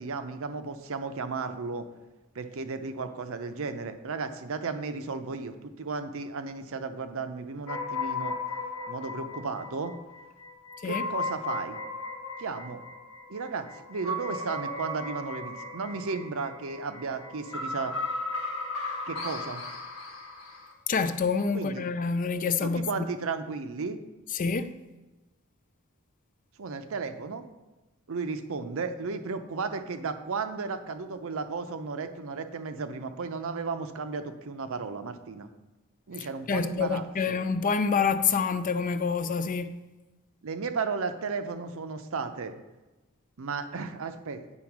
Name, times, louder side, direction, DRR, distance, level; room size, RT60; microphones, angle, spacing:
voice 1, 0.0-1.9 2.3-8.4 8.9-9.9 10.8-11.8 12.4-12.8 13.3-18.0 19.1-19.6 21.5-21.8 22.6-24.0 26.6-27.4 28.1-35.5 36.1-37.4 40.4-42.6 43.4-44.4, right 4 dB, 65° right, 0.6 m, -34 dB
sound 1, 7.7-20.7, left 3 dB, 70° left, 1.1 m, -36 dB
voice 2, 20.9-23.1 24.3-24.7 36.5-39.8, left 5 dB, 40° left, 0.4 m, -27 dB
8.7 x 4.2 x 5.9 m
head